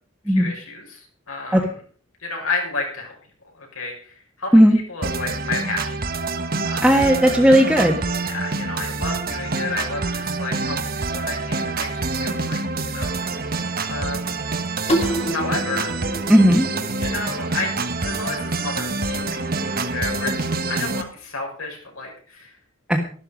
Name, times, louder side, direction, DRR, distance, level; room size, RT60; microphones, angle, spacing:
voice 1, 0.3-1.7 2.2-3.1 3.6-4.6 4.9-6.0 6.6-6.9 8.2-13.6 13.9-14.4 15.3-15.9 17.0-17.7 18.0-19.4 19.9-22.5, left 3 dB, 85° left, 0 dB, 6.1 m, -31 dB
sound 1, 5.0-21.0, right 3 dB, 45° right, 1.2 m, -26 dB
voice 2, 6.8-8.0 16.3-16.7 22.9-23.0, equal, 5° right, -1 dB, 1.4 m, -14 dB
sound 2, 14.9-17.7, right 1 dB, 30° left, 2.2 m, -28 dB
13.0 x 12.0 x 5.2 m, 0.43 s
head